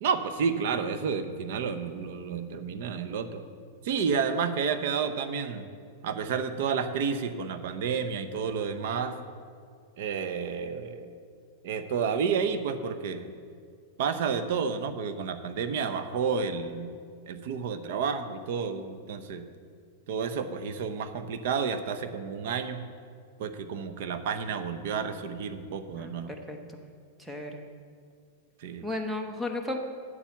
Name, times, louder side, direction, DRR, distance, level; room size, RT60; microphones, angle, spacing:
voice 1, 0.0-3.4 3.8-5.6 6.0-9.2 10.0-11.1 11.6-13.3 14.0-16.9 17.3-19.5 20.1-22.8 23.4-26.3 28.6-28.8, right 6 dB, 60° right, 10 dB, 0.8 m, -30 dB
voice 2, 26.0-26.8 27.2-27.6 28.8-29.8, left 2 dB, 5° right, 3 dB, 0.8 m, -35 dB
8.3 x 7.3 x 7.1 m, 2.1 s
supercardioid pair, 150°, 0 cm